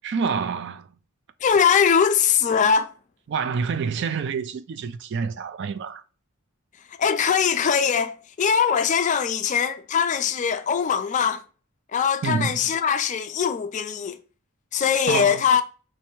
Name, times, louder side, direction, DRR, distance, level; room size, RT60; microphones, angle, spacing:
voice 1, 0.0-0.9 3.3-6.0 12.2-12.6 15.1-15.5, right 5 dB, 50° right, 0.3 m, -27 dB
voice 2, 1.4-2.9 7.0-11.4 11.9-14.2 14.7-15.6, left 7 dB, 35° left, 0.3 m, -21 dB
3.3 x 3.1 x 3.0 m
head